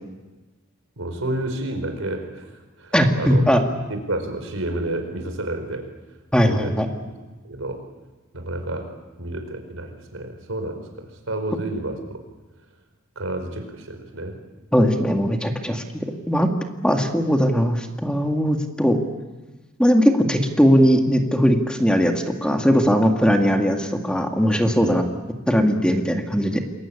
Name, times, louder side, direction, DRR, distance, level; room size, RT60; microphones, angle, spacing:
voice 1, 1.0-2.5 2.8-3.4 3.9-5.9 6.4-6.8 7.4-7.8 8.3-8.9 9.2-12.2 13.1-14.4 24.8-24.9, right 1 dB, 90° right, 6 dB, 4.8 m, -30 dB
voice 2, 2.9-3.6 6.3-6.9 14.7-16.5 16.8-19.0 19.8-25.0 25.5-26.6, equal, 5° left, 3 dB, 2.2 m, -19 dB
28.0 x 22.0 x 8.6 m, 1.2 s
head